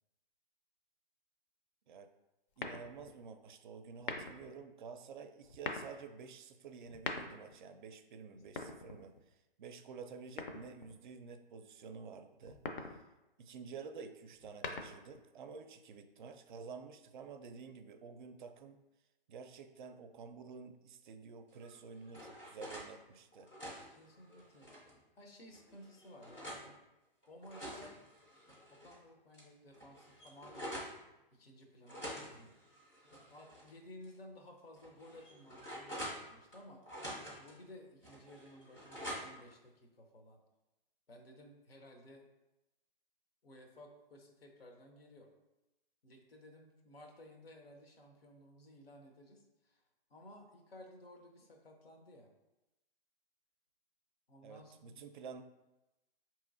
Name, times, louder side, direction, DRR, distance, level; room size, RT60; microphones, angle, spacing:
sound 1, 2.6-3.2 3.9-4.5 5.4-6.0 6.8-7.6 8.4-9.3 10.4-11.0 12.4-13.0 14.3-15.2, left 4 dB, 60° left, 0.5 m, -43 dB
voice 1, 2.6-12.6 12.9-13.0 13.4-18.8 19.3-23.5 54.4-55.4, right 5 dB, 55° right, 8 dB, 0.4 m, -50 dB
sound 2, 21.6-22.9 23.3-25.0 25.5-26.7 27.2-29.0 29.3-29.4 29.7-31.0 31.8-33.7 34.0-34.1 34.8-36.6 36.9-37.5 38.0-39.5, equal, 10° left, 0.3 m, -47 dB
voice 2, 23.9-24.7 25.2-26.7 27.3-27.9 28.7-30.7 31.3-32.6 33.3-36.8 37.4-40.4 41.1-42.2 43.4-45.3 46.0-52.3 54.3-55.0, left 1 dB, 90° left, 3 dB, 0.8 m, -56 dB
4.6 x 2.9 x 2.5 m, 0.97 s
hypercardioid pair, 140°, 29 cm